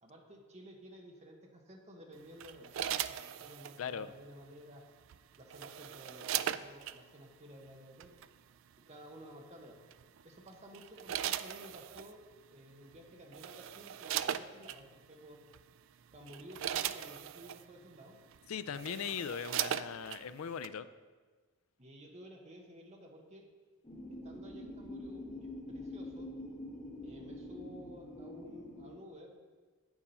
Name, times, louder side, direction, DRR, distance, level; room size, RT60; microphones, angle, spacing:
voice 1, 0.0-4.8 5.4-8.1 8.9-9.8 10.2-12.2 12.5-15.4 16.1-18.1 21.8-23.4 24.2-26.3 27.0-29.3, equal, 30° right, 1 dB, 1.2 m, -53 dB
sound 1, 2.4-3.8 5.1-7.0 8.0-8.2 9.9-10.2 10.7-12.1 12.9-13.0 13.3-14.8 15.5-15.7 16.1-17.6 18.3-18.4 18.7-20.2 20.6-20.7, right 11 dB, 60° right, 0.3 m, -38 dB
voice 2, 3.8-4.1 18.5-20.9, left 7 dB, 70° left, 13 dB, 0.4 m, -39 dB
sound 2, 23.8-28.9, left 1 dB, 25° left, 1.9 m, -45 dB
8.6 x 7.2 x 5.4 m, 1.4 s
head